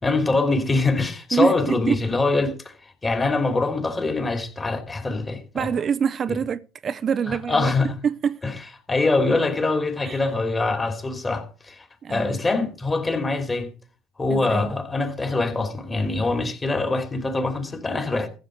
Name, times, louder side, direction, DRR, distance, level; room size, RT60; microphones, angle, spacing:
voice 1, 0.0-5.7 6.3-6.4 7.3-8.0 8.4-8.5 8.9-13.7 14.2-18.3, left 3 dB, 25° left, 3.0 m, -24 dB
voice 2, 1.3-2.0 5.5-7.7 8.0-8.4 10.0-10.2 12.0-12.4 14.3-14.7, right 7 dB, 40° right, 0.6 m, -25 dB
15.0 x 7.4 x 5.1 m
supercardioid pair, 80°, 0 cm